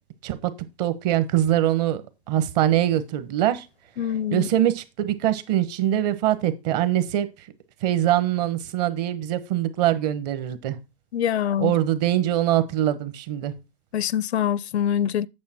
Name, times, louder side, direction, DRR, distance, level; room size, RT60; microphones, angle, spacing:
voice 1, 0.8-2.0 2.3-3.6 4.3-7.3 7.8-10.8 11.6-13.5, right 12 dB, 40° right, 1.2 m, -23 dB
voice 2, 4.0-4.5 11.1-11.7 13.9-15.3, left 10 dB, 80° left, 0.6 m, -24 dB
8.6 x 7.0 x 4.4 m
hypercardioid pair, 135°, 32 cm